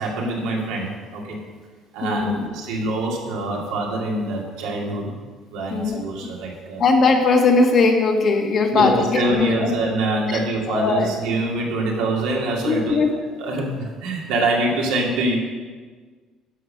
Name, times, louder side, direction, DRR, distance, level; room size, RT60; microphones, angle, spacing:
voice 1, 0.0-1.4 1.9-5.1 5.5-6.8 8.7-13.0 13.4-15.4, right 2 dB, 85° right, -2 dB, 2.5 m, -24 dB
voice 2, 2.0-2.5 5.7-6.0 6.8-9.7 10.7-11.1 12.6-13.1, left 4 dB, 45° left, 3 dB, 1.5 m, -19 dB
10.5 x 5.9 x 6.6 m, 1.4 s
cardioid pair, 125°, 0 cm